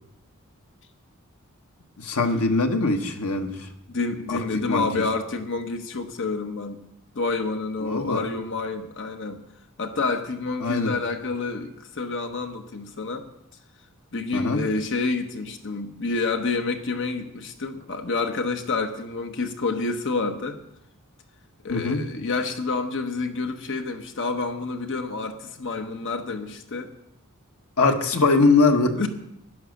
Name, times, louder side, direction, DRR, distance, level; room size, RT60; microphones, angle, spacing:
voice 1, 2.0-3.6 4.3-4.4 4.7-4.8 7.8-8.2 10.6-10.9 14.3-14.6 21.7-22.0 27.8-28.9, left 3 dB, 75° left, 5 dB, 1.4 m, -21 dB
voice 2, 3.9-6.8 7.1-9.4 9.8-13.3 14.1-20.6 21.6-26.9 28.9-29.1, left 3 dB, 60° left, 6 dB, 1.1 m, -28 dB
11.0 x 10.5 x 6.5 m, 0.80 s
head